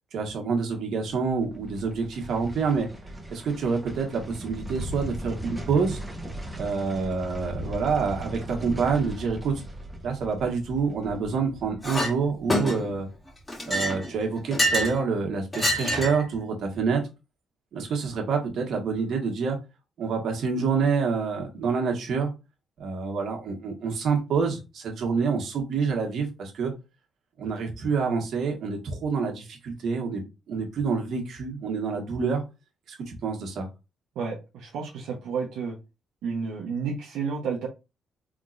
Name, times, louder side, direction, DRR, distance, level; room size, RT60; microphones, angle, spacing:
voice 1, 0.1-2.9 3.3-6.0 6.6-9.5 10.0-13.1 13.7-17.0 17.7-19.6 20.0-22.3 22.8-26.7 27.4-30.2 30.5-32.4 33.1-33.7, right 5 dB, 65° right, 2 dB, 1.4 m, -27 dB
sound 1, 1.2-14.2 14.5-14.6, right 1 dB, 10° right, 1.1 m, -39 dB
Chink clink, 11.8-12.1 12.5-13.0 13.5-15.0 15.5-16.3, equal, 20° left, 2.0 m, -26 dB
voice 2, 34.2-35.8 36.2-37.7, right 5 dB, 85° right, -2 dB, 0.9 m, -31 dB
3.7 x 3.6 x 2.5 m, 0.26 s
cardioid pair, 90°, 0 cm